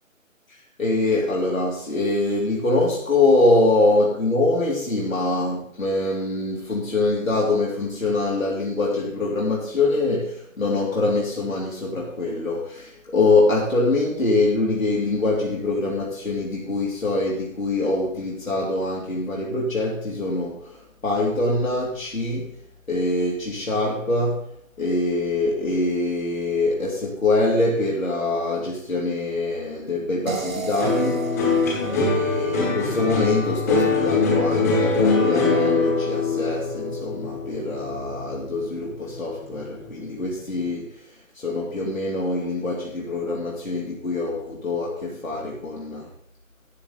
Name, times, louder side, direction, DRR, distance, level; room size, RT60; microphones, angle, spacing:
voice 1, 0.5-22.6 22.9-24.5 24.8-31.6 31.9-46.1, left 2 dB, 80° left, -5 dB, 3.0 m, -24 dB
sound 1, 30.3-33.3, right 4 dB, 80° right, 2.1 m, -34 dB
sound 2, 30.8-39.2 39.6-40.2, left 3 dB, 10° left, 1.3 m, -23 dB
13.0 x 8.7 x 4.1 m, 0.66 s
figure-of-eight pair, 155°, 40 cm